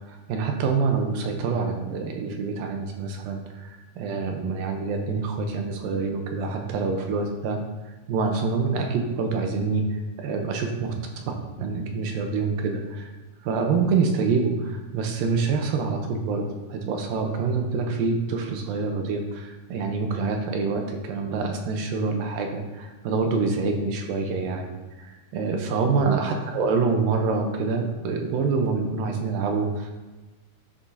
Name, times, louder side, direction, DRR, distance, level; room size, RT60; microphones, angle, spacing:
voice 1, 0.0-7.6 7.9-10.7 11.3-13.1 13.4-16.4 16.7-24.7 25.0-29.9, right 4 dB, 75° right, 3 dB, 2.3 m, -26 dB
11.0 x 6.9 x 2.8 m, 1.2 s
omnidirectional pair, 4.6 m